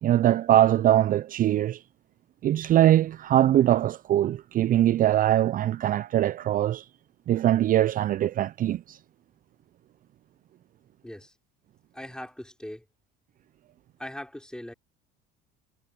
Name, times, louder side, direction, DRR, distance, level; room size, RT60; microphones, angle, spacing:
voice 1, 0.0-1.8 2.4-6.8 7.3-9.0, right 12 dB, 45° right, 0.5 m, -22 dB
voice 2, 11.0-11.3 11.9-12.8 14.0-14.7, left 1 dB, 5° left, 4.0 m, -40 dB
supercardioid pair, 80°, 21 cm